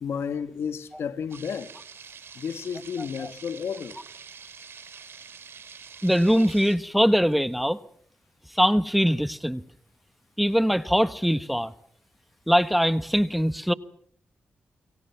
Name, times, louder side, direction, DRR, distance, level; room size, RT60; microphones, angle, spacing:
voice 1, 0.0-1.7 2.3-4.0, left 7 dB, 75° left, 1.5 m, -32 dB
sound 1, 1.3-6.8, right 6 dB, 70° right, 4.9 m, -46 dB
voice 2, 6.0-7.8 8.5-9.6 10.4-11.7 12.5-13.7, equal, ahead, 1.4 m, -22 dB
29.0 x 25.0 x 5.9 m
supercardioid pair, 50°, 4 cm